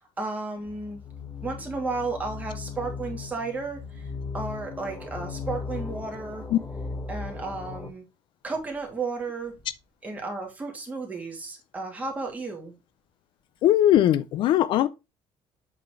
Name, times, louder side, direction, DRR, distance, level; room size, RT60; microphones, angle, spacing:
voice 1, 0.2-1.0 1.4-4.1 4.3-6.5 7.1-8.0 8.4-9.5 10.0-12.7, right 3 dB, 15° right, 2.4 m, -33 dB
sound 1, 0.7-7.9, left 4 dB, 20° left, 1.2 m, -37 dB
voice 2, 13.6-14.9, left 12 dB, 55° left, 0.5 m, -20 dB
8.3 x 4.3 x 4.4 m
cardioid pair, 160°, 10 cm